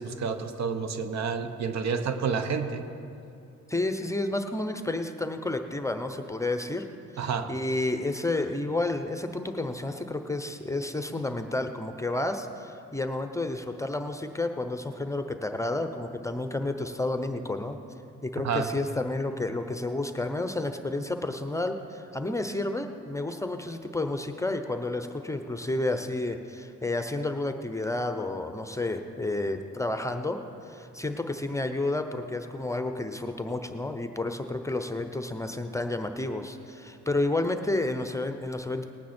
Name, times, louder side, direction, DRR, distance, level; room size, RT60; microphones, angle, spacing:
voice 1, 0.0-2.9 7.2-7.5 18.4-18.7, right 5 dB, 60° right, 9 dB, 1.0 m, -29 dB
voice 2, 3.7-6.8 7.1-17.8 18.2-38.8, left 2 dB, 10° left, 7 dB, 0.7 m, -31 dB
19.0 x 9.2 x 4.4 m, 2.7 s
cardioid pair, 90°, 30 cm